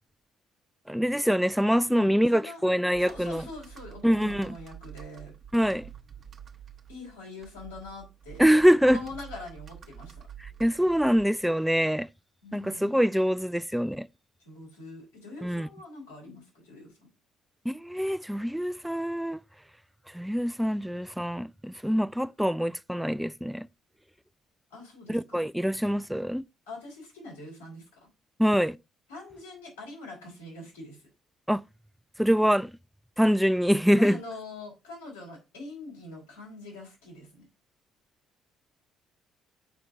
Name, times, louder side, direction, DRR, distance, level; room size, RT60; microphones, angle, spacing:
voice 1, 0.9-3.5 4.0-4.5 5.5-5.9 8.4-9.0 10.4-12.1 12.5-14.1 15.4-15.7 17.7-19.4 20.1-23.7 25.1-26.4 28.4-28.8 31.5-31.6 32.2-32.7 33.2-34.2, equal, ahead, 0.3 m, -24 dB
voice 2, 1.8-2.6 3.0-5.3 6.9-8.4 8.8-10.1 12.4-13.0 14.4-17.0 24.7-25.4 26.7-28.1 29.1-31.0 34.0-37.5, left 2 dB, 85° left, 3.4 m, -44 dB
Computer keyboard, 2.9-11.5, right 9 dB, 45° right, 0.8 m, -48 dB
6.9 x 5.0 x 4.4 m
hypercardioid pair, 50°, 0 cm